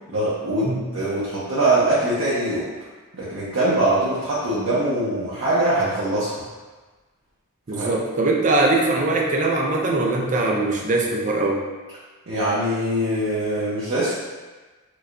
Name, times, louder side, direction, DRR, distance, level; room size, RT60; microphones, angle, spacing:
voice 1, 0.1-2.7 3.1-6.4 7.7-8.0 12.3-14.1, right 1 dB, 60° right, -10 dB, 0.8 m, -22 dB
voice 2, 7.7-11.7, right 2 dB, 35° right, 0 dB, 0.4 m, -21 dB
4.6 x 2.3 x 2.5 m, 1.3 s
head